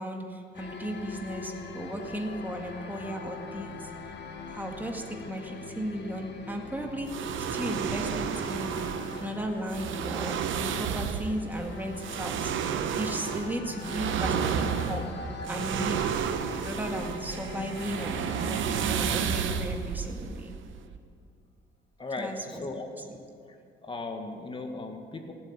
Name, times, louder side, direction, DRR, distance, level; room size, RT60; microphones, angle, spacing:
voice 1, 0.0-3.9 4.5-7.1 7.4-12.5 13.0-15.1 15.5-16.3 16.6-20.5 22.2-22.6 22.9-23.0, equal, 10° right, 2 dB, 1.8 m, -36 dB
sound 1, 0.5-19.2, left 4 dB, 60° left, 1.7 m, -42 dB
sound 2, 7.1-21.0, right 7 dB, 80° right, 0.9 m, -31 dB
voice 2, 22.0-23.0 23.8-25.3, left 3 dB, 25° left, 4 dB, 1.9 m, -37 dB
17.0 x 8.0 x 9.0 m, 2.5 s
cardioid pair, 90°, 20 cm